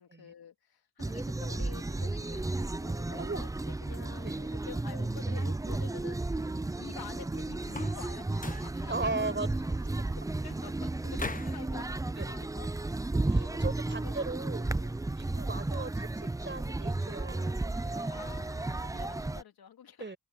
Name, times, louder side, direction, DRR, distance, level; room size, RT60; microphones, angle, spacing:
voice 1, 0.0-6.5 6.8-9.4 9.9-11.9 12.2-12.7 13.3-14.4 14.8-15.0 18.1-20.1, left 8 dB, 75° left, 3.2 m, -49 dB
sound 1, 1.0-19.4, right 2 dB, 10° right, 0.5 m, -33 dB
sound 2, 7.6-8.1 8.4-8.8 11.2-11.6, left 3 dB, 20° left, 1.2 m, -39 dB
voice 2, 8.9-9.6 12.2-12.3 13.2-14.7 15.1-18.2 20.0-20.2, right 3 dB, 30° right, 5.4 m, -37 dB
open air
cardioid pair, 55°, 37 cm